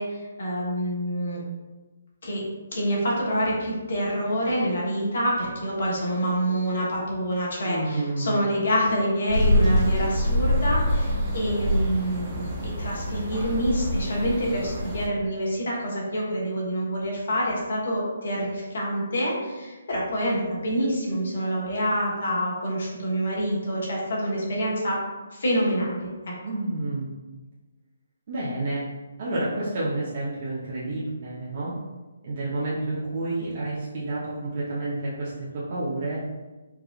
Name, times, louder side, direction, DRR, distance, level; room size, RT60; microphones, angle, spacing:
voice 1, 0.0-1.4 2.2-2.4 2.7-25.0 25.3-26.3, equal, 65° left, -4 dB, 1.3 m, -27 dB
voice 2, 7.6-8.4 26.4-27.1 28.3-28.8 29.2-31.7 32.2-36.2, right 2 dB, 45° right, -9 dB, 0.9 m, -29 dB
sound 1, 9.3-15.1, equal, 20° right, 1.0 m, -25 dB
4.7 x 2.5 x 2.4 m, 1.2 s
hypercardioid pair, 150°, 0 cm